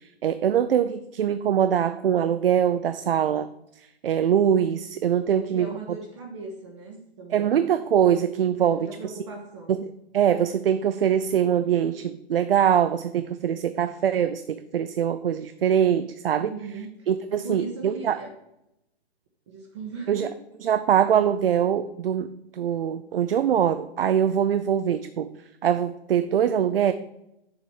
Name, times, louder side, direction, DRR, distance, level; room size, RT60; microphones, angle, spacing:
voice 1, 0.0-3.5 4.0-5.7 7.3-8.9 9.7-9.8 10.1-16.5 17.1-18.2 20.1-20.3 20.6-25.3 25.6-26.9, right 9 dB, 65° right, 12 dB, 0.6 m, -23 dB
voice 2, 5.3-7.6 8.6-9.8 16.4-18.3 19.5-20.3, right 4 dB, 25° right, 1 dB, 0.9 m, -38 dB
8.5 x 7.3 x 4.6 m, 0.85 s
hypercardioid pair, 170°, 32 cm